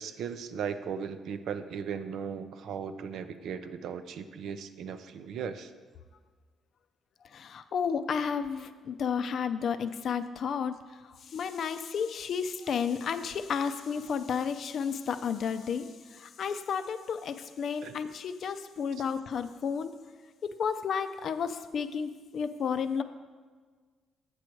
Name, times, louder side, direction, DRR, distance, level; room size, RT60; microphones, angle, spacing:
voice 1, 0.0-5.7 17.8-17.9, right 7 dB, 75° right, 10 dB, 0.5 m, -37 dB
voice 2, 7.2-19.9 20.4-23.0, left 6 dB, 60° left, 10 dB, 0.5 m, -32 dB
8.3 x 6.3 x 4.6 m, 1.5 s
cardioid pair, 90°, 0 cm